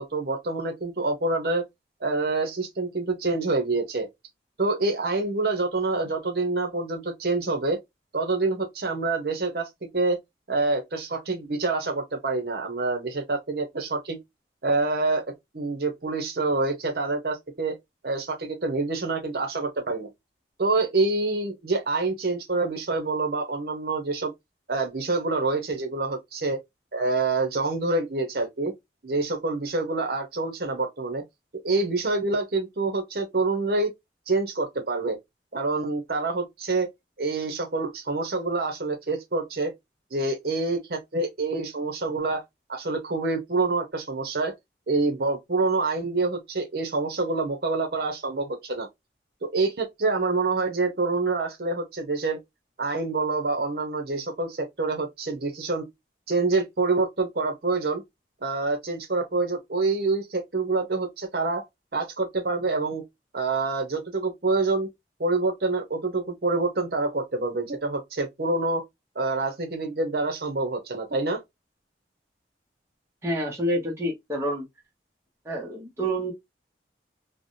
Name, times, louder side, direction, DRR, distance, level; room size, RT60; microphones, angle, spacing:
voice 1, 0.0-1.6 2.0-4.1 4.6-7.8 8.1-10.2 10.5-14.2 14.6-15.2 15.5-17.7 18.0-20.1 20.6-24.3 24.7-26.6 26.9-28.7 29.0-31.2 31.6-33.9 34.3-35.2 35.5-36.9 37.2-39.7 40.1-42.4 42.7-44.5 44.9-48.9 49.4-52.4 52.8-55.8 56.3-58.0 58.4-61.6 61.9-63.0 63.3-64.9 65.2-68.8 69.1-71.4, right 3 dB, 55° right, 0.8 m, -26 dB
voice 2, 73.2-74.7 75.5-76.3, right 1 dB, 15° right, 0.7 m, -28 dB
3.3 x 2.1 x 2.5 m
head